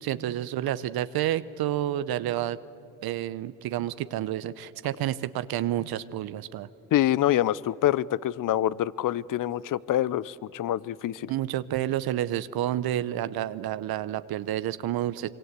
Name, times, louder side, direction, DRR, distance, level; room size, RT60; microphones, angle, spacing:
voice 1, 0.0-2.6 3.0-6.7 11.3-15.3, right 12 dB, 75° right, 15 dB, 0.8 m, -29 dB
voice 2, 6.9-11.3, left 12 dB, 60° left, 21 dB, 0.7 m, -26 dB
25.5 x 23.5 x 8.2 m, 2.6 s
supercardioid pair, 65°, 37 cm